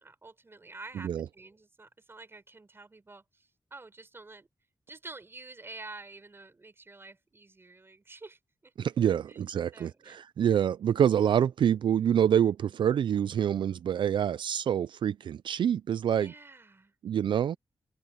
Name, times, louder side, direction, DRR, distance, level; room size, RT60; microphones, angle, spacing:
voice 1, 0.0-4.5 4.9-8.7 9.3-9.5 9.7-10.3 16.2-16.9 17.4-17.6, right 3 dB, 30° right, 4.4 m, -49 dB
voice 2, 8.8-16.3 17.0-17.6, right 9 dB, 70° right, 0.3 m, -26 dB
open air
wide cardioid pair, 110°, 8 cm